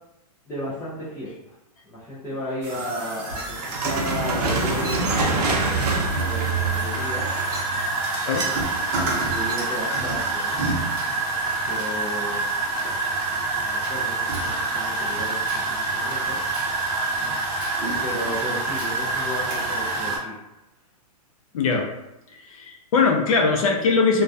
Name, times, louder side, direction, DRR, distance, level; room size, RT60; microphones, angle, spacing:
voice 1, 0.5-1.6 1.8-7.3 9.0-10.7 11.7-12.4 13.6-16.4 17.3-20.4, left 1 dB, 10° left, -10 dB, 0.3 m, -34 dB
sound 1, 2.6-20.2, right 3 dB, 35° right, 0.7 m, -26 dB
Chink clink, 3.4-3.7 4.8-5.2 6.2-6.4 7.5-7.8 9.3-9.7 11.0-11.2 11.8-12.0 12.8-12.9 13.2-13.4 13.8-14.1 14.3-14.6 15.1-15.2 15.5-15.8 16.1-16.2 16.5-16.8 17.2-17.3 17.6-17.9 18.3-18.5 18.8-19.1, right 1 dB, 10° right, 1.0 m, -41 dB
sound 2, 3.6-7.7, right 3 dB, 85° right, 0.6 m, -26 dB
voice 2, 21.5-21.9 22.3-24.2, left 4 dB, 60° left, 1 dB, 0.6 m, -21 dB
2.2 x 2.2 x 2.5 m, 0.92 s
hypercardioid pair, 150°, 20 cm